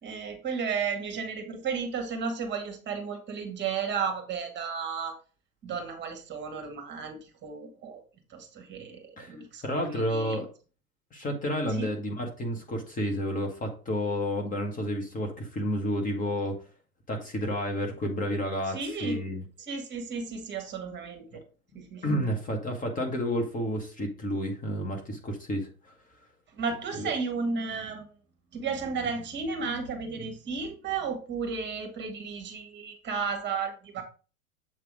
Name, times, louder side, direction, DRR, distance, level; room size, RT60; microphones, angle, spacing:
voice 1, 0.0-5.1 5.6-8.0 8.3-10.4 11.8-11.9 18.7-19.2 19.6-21.4 21.7-22.3 26.5-28.0 28.5-34.0, right 5 dB, 25° right, 5 dB, 1.5 m, -33 dB
voice 2, 9.6-10.5 11.1-16.6 17.1-19.4 22.0-25.9 27.0-27.1, equal, 20° left, 2 dB, 1.2 m, -30 dB
7.5 x 3.3 x 4.8 m, 0.37 s
figure-of-eight pair, 95°, 43 cm